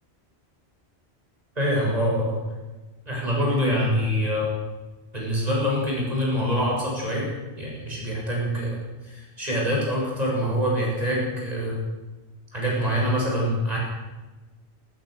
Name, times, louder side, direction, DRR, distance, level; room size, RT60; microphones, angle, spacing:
voice 1, 1.6-2.4 3.1-4.5 5.1-7.3 7.6-8.8 9.0-11.8 12.5-13.8, equal, 35° right, -4 dB, 7.8 m, -25 dB
21.0 x 21.0 x 6.8 m, 1.2 s
omnidirectional pair, 1.1 m